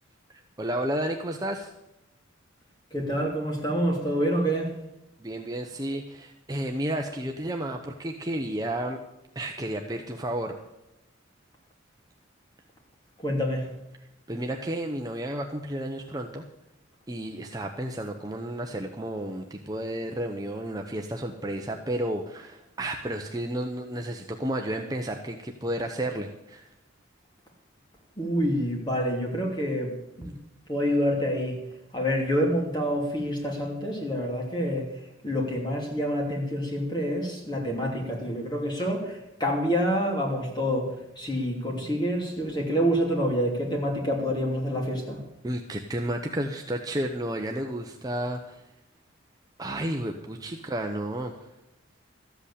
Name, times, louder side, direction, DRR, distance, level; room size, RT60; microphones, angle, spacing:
voice 1, 0.6-1.7 5.2-9.0 9.3-10.6 14.3-16.5 17.1-26.7 45.4-48.7 49.6-51.5, right 1 dB, 20° right, 3 dB, 0.8 m, -32 dB
voice 2, 2.9-4.7 13.2-13.7 28.2-30.3 30.7-31.6 31.9-34.9 35.2-45.2, equal, 20° left, 0 dB, 2.9 m, -27 dB
13.5 x 8.1 x 8.4 m, 0.90 s
head